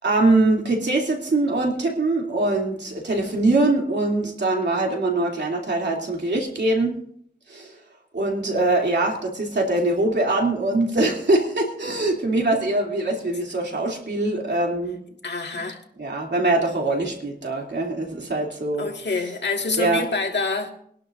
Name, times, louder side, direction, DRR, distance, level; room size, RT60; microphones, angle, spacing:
voice 1, 0.0-7.0 7.5-7.7 8.1-15.0 16.0-18.9 19.8-20.0, right 2 dB, 90° right, 0 dB, 2.8 m, -23 dB
voice 2, 15.2-15.8 18.8-20.7, left 3 dB, 90° left, 2 dB, 1.8 m, -26 dB
22.5 x 11.5 x 2.6 m, 0.65 s
wide cardioid pair, 60°, 18 cm